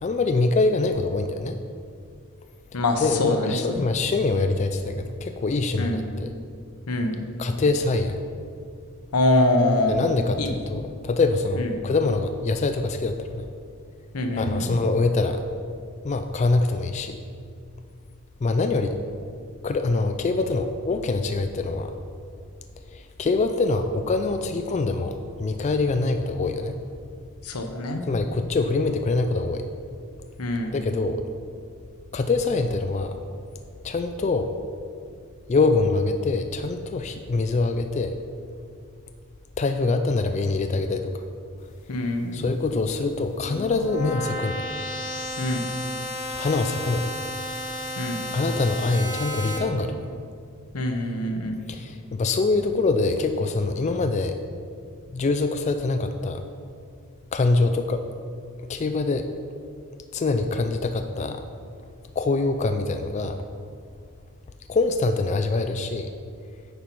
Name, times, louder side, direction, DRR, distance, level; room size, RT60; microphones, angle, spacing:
voice 1, 0.0-1.5 3.0-6.3 7.4-8.2 9.9-13.4 14.4-15.4 16.0-17.2 18.4-19.0 19.6-21.9 22.9-26.8 28.1-29.6 30.7-31.2 32.1-33.1 33.8-34.5 35.5-38.1 39.6-41.2 42.3-44.7 46.4-47.1 48.3-50.1 51.7-54.4 55.1-56.4 57.3-58.0 58.7-59.2 60.1-61.4 62.2-63.4 64.7-66.1, left 3 dB, 30° left, 7 dB, 0.3 m, -24 dB
voice 2, 2.7-3.9 5.8-6.0 6.9-7.2 9.1-10.0 10.4-10.5 11.5-11.7 14.1-14.8 27.4-28.0 30.4-30.8 41.9-42.4 45.4-45.6 48.0-48.2 50.7-51.6, left 1 dB, 90° left, 5 dB, 0.9 m, -24 dB
sound 1, 43.1-49.6, left 1 dB, 55° left, 1.3 m, -33 dB
9.3 x 5.6 x 4.5 m, 2.3 s
head